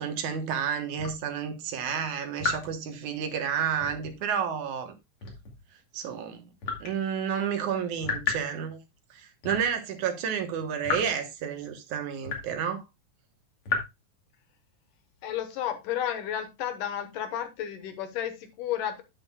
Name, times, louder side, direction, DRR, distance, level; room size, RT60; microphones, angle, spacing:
voice 1, 0.0-4.9 5.9-6.4 6.8-8.8 9.1-12.8, right 7 dB, 70° right, 2.6 m, -30 dB
sound 1, 1.0-1.2 2.4-2.8 3.8-4.2 5.2-5.6 6.6-7.0 8.0-8.5 9.4-9.7 10.8-11.2 12.3-12.6 13.7-13.8, left 4 dB, 45° left, 3.1 m, -31 dB
voice 2, 15.2-19.0, left 10 dB, 80° left, 2.9 m, -32 dB
9.4 x 9.2 x 2.3 m
omnidirectional pair, 3.7 m